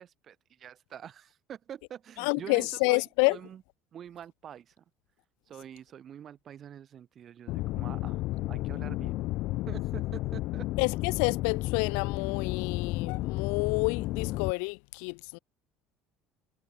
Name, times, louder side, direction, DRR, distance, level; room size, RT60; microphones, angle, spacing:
voice 1, 0.0-3.6 3.9-4.8 5.5-9.3 9.7-10.7, right 9 dB, 30° right, 6.7 m, -46 dB
voice 2, 2.2-3.4 10.8-15.4, left 40 dB or more, 80° left, 2.3 m, -29 dB
sound 1, 7.5-14.5, left 18 dB, 50° left, 2.6 m, -32 dB
cardioid pair, 175°, 0 cm